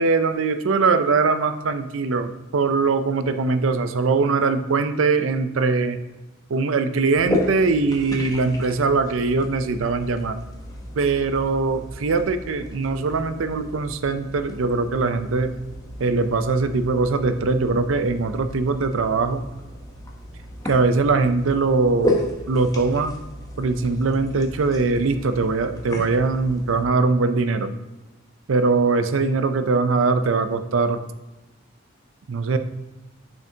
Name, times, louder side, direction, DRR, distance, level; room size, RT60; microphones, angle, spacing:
voice 1, 0.0-6.0 6.5-10.4 11.0-15.5 16.0-19.5 20.6-23.2 23.6-27.7 28.5-31.0 32.3-32.6, right 4 dB, 85° right, 10 dB, 0.5 m, -21 dB
sound 1, 7.2-26.8, left 2 dB, 20° left, 0.8 m, -33 dB
6.9 x 6.3 x 2.8 m, 1.1 s
head